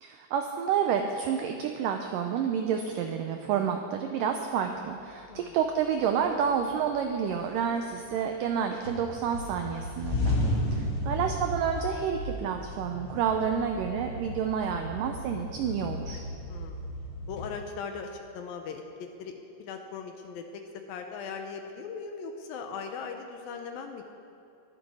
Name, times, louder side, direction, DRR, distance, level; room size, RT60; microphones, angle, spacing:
voice 1, 0.0-10.4 10.7-16.2, right 7 dB, 85° right, 5 dB, 1.9 m, -29 dB
sound 1, 5.6-5.7 6.2-7.0 7.3-8.5 8.8-17.5, left 1 dB, 55° left, 1.6 m, -34 dB
voice 2, 16.5-16.8 17.3-20.6 20.9-24.0, left 5 dB, 75° left, 5 dB, 2.3 m, -39 dB
21.5 x 7.2 x 4.9 m, 2.7 s
omnidirectional pair, 4.6 m